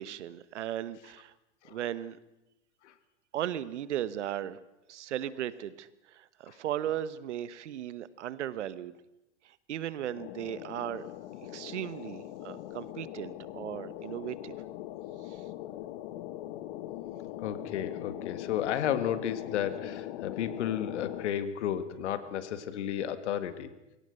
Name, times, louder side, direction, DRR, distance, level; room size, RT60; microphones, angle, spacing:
voice 1, 0.0-1.3 1.7-2.2 3.3-4.6 4.9-5.9 6.1-8.9 9.7-11.1 11.5-14.5, right 11 dB, 80° right, 16 dB, 1.2 m, -36 dB
sound 1, 10.1-21.3, left 13 dB, 55° left, 1.4 m, -41 dB
voice 2, 17.4-23.7, left 10 dB, 75° left, 12 dB, 1.9 m, -32 dB
23.0 x 17.0 x 6.6 m, 0.92 s
hypercardioid pair, 120°, 35 cm